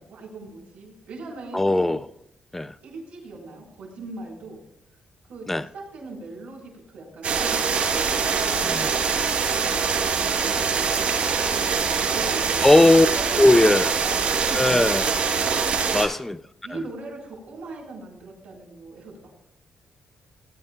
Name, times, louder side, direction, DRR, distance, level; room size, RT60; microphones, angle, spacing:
voice 1, 0.0-2.0 2.8-4.6 5.3-5.5 5.7-7.9 8.3-8.7 9.1-11.2 11.5-12.6 13.1-14.2 14.5-14.6 15.6-16.0 16.6-19.4, right 3 dB, 85° right, 4.1 m, -39 dB
voice 2, 1.5-2.1 2.5-2.7 5.5-5.7 8.6-8.9 12.6-13.1 13.4-13.9 14.5-15.1 15.9-16.4 16.7-16.8, left 2 dB, 10° left, 0.4 m, -18 dB
sound 1, 7.2-16.1, right 5 dB, 70° right, 3.8 m, -24 dB
19.0 x 10.5 x 2.2 m
cardioid pair, 130°, 2 cm